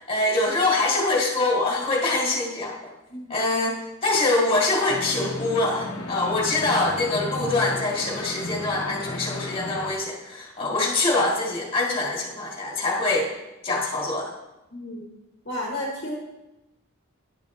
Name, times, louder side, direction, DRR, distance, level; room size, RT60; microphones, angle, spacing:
voice 1, 0.1-2.9 3.3-13.3 13.6-14.3, left 2 dB, 25° left, -4 dB, 1.8 m, -24 dB
sound 1, 4.9-9.9, left 2 dB, 75° left, 0.9 m, -34 dB
voice 2, 14.7-15.1 15.4-16.2, left 1 dB, 55° left, -2 dB, 1.2 m, -32 dB
10.5 x 7.1 x 2.6 m, 0.98 s
head